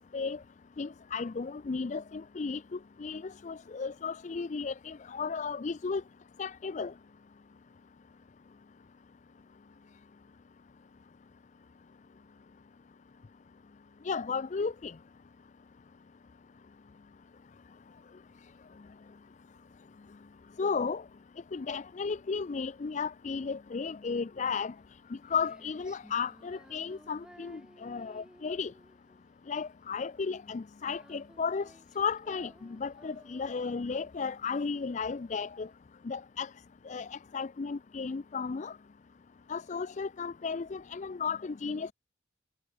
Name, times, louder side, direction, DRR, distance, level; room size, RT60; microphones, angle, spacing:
voice 1, 0.8-2.6 3.0-6.0 6.4-6.9 14.0-14.9 20.6-21.0 21.5-24.7 25.3-28.7 29.5-31.7 32.0-32.5 32.8-35.7 36.1-36.5 36.9-38.7 39.5-41.9, left 5 dB, 40° left, 0.4 m, -34 dB
Female singing, 24.8-35.7, equal, 5° right, 3.7 m, -58 dB
head